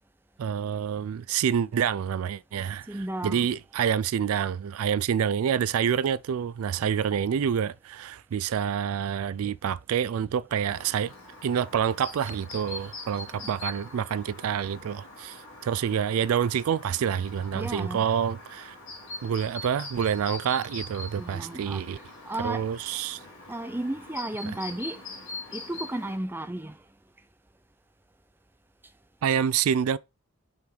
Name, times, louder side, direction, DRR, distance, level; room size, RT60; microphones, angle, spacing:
voice 1, 0.4-11.1 11.4-18.7 19.2-22.0 22.4-23.2 29.2-30.0, right 8 dB, 75° right, 0.3 m, -27 dB
voice 2, 2.9-3.5 13.3-13.5 17.5-18.1 21.1-22.7 23.5-25.0 25.5-26.8, right 1 dB, 10° right, 0.5 m, -34 dB
Chirp tweet, 10.7-26.2, left 3 dB, 60° left, 2.8 m, -43 dB
5.7 x 3.9 x 5.1 m
head